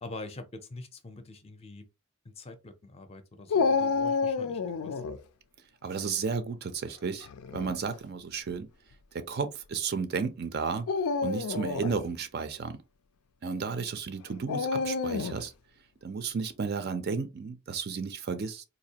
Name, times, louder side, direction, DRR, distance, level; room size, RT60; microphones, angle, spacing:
voice 1, 0.0-1.9 2.2-5.0 11.6-11.7, left 2 dB, 25° left, 0.5 m, -44 dB
Dog, 3.5-5.2 7.2-7.7 8.5-8.6 10.8-12.0 14.5-15.5, left 4 dB, 90° left, 0.4 m, -29 dB
voice 2, 5.8-8.7 9.1-10.9 11.2-12.8 13.4-15.5 16.0-18.6, right 5 dB, 45° right, 0.4 m, -33 dB
4.0 x 2.6 x 2.8 m
head